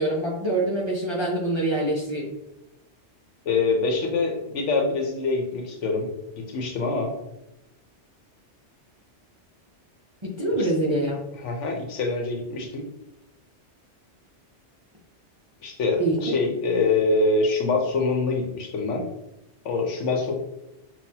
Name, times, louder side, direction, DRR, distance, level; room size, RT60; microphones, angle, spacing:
voice 1, 0.0-2.3 10.2-11.2 16.0-16.3, right 2 dB, 30° right, -4 dB, 0.6 m, -25 dB
voice 2, 3.4-6.1 6.4-7.1 10.6-10.7 11.4-12.8 15.6-19.0 19.6-20.3, left 3 dB, 80° left, 1 dB, 1.1 m, -25 dB
5.6 x 2.5 x 2.8 m, 0.89 s
omnidirectional pair, 1.2 m